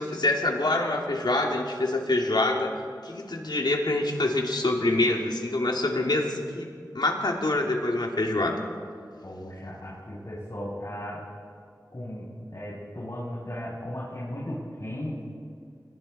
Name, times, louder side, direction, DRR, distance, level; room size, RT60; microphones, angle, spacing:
voice 1, 0.0-2.7 3.0-6.7 6.9-8.6, left 2 dB, 85° left, 1 dB, 2.6 m, -26 dB
voice 2, 5.9-6.4 9.2-11.2 11.9-15.2, left 1 dB, 55° left, -8 dB, 7.5 m, -36 dB
28.0 x 23.0 x 4.3 m, 2.2 s
wide cardioid pair, 50°, 7 cm